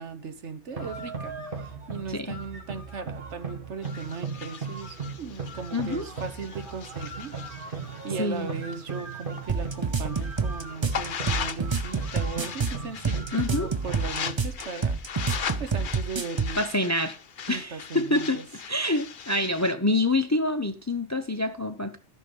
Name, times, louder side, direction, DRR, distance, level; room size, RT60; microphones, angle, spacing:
voice 1, 0.0-7.3 7.7-7.8 8.0-15.0 15.6-16.6 17.4-18.5, right 5 dB, 75° right, 1.4 m, -38 dB
sound 1, 0.7-14.4, right 4 dB, 50° right, 2.2 m, -38 dB
sound 2, 3.8-9.5 9.9-19.7, left 7 dB, 50° left, 0.8 m, -39 dB
voice 2, 5.7-6.1 8.2-8.5 13.3-13.7 16.6-17.2 17.5-18.4 18.7-22.0, left 2 dB, 20° left, 0.6 m, -26 dB
sound 3, 9.5-16.6, right 5 dB, 25° right, 0.8 m, -28 dB
13.5 x 6.4 x 5.3 m
omnidirectional pair, 1.2 m